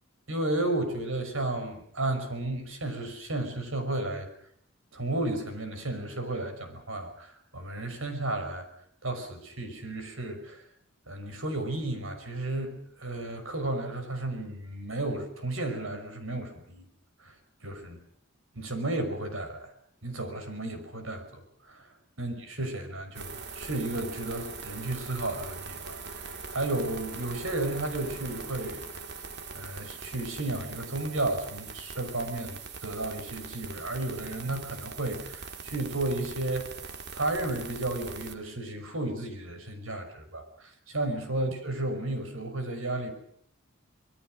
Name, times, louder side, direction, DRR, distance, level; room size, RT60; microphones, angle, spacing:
voice 1, 0.3-4.3 4.9-8.7 9.0-10.6 11.1-16.9 17.2-17.4 17.6-18.0 18.5-19.7 20.0-28.8 29.5-36.7 37.1-43.1, right 2 dB, 75° right, 8 dB, 5.8 m, -33 dB
sound 1, 23.1-38.3, right 4 dB, 55° right, 2.3 m, -42 dB
26.0 x 22.0 x 6.3 m, 0.64 s
head